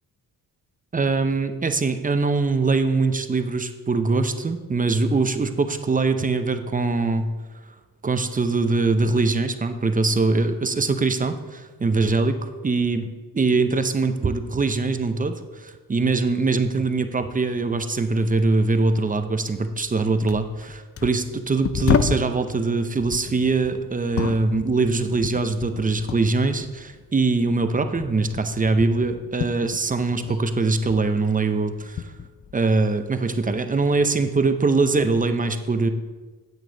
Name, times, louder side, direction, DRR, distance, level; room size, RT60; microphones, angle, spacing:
voice 1, 0.9-7.3 8.0-13.1 13.3-32.1 32.5-35.9, right 3 dB, 20° right, 8 dB, 0.7 m, -22 dB
sound 1, 19.8-20.0 20.3-22.4 23.0-26.3 26.6-30.4 30.7-33.0 33.5-34.2 35.0-35.2, left 7 dB, 40° left, 0.5 m, -31 dB
9.3 x 8.2 x 3.9 m, 1.3 s
cardioid pair, 100°, 37 cm